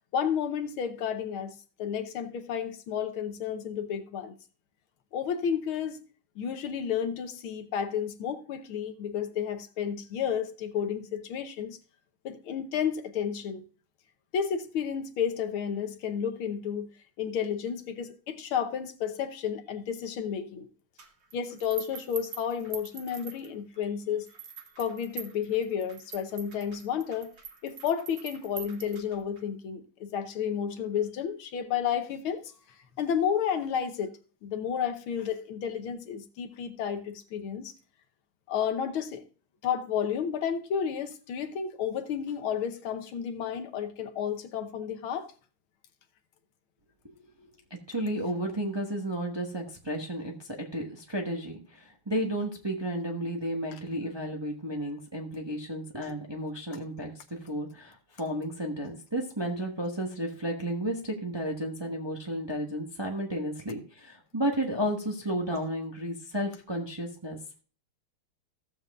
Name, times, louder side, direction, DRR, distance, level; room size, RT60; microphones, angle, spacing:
voice 1, 0.1-1.5 1.8-4.4 5.1-6.0 6.4-11.8 12.3-13.6 14.3-16.9 17.2-20.7 21.3-24.3 24.8-27.3 27.6-32.4 33.0-34.1 34.4-37.7 38.5-39.2 39.6-45.3, left 8 dB, 75° left, 1.7 m, -31 dB
sound 1, 21.0-23.8 24.3-29.4, right 6 dB, 45° right, 0.9 m, -45 dB
voice 2, 47.7-67.4, right 1 dB, 15° right, 0.9 m, -33 dB
16.0 x 7.3 x 2.4 m
omnidirectional pair, 2.4 m